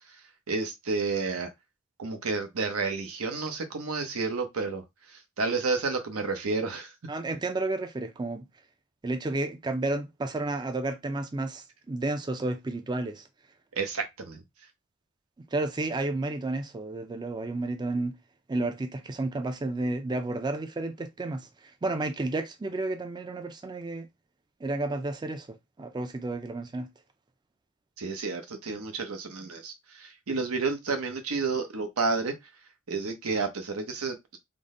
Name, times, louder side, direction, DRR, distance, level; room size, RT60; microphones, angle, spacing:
voice 1, 0.5-1.5 2.0-4.8 5.4-6.9 13.8-14.4 28.0-32.3 32.9-34.4, right 4 dB, 90° right, 0.9 m, -30 dB
voice 2, 7.1-8.5 9.0-13.2 15.5-18.2 18.5-24.1 24.6-26.9, right 2 dB, 20° right, 0.4 m, -31 dB
3.7 x 2.1 x 3.7 m
head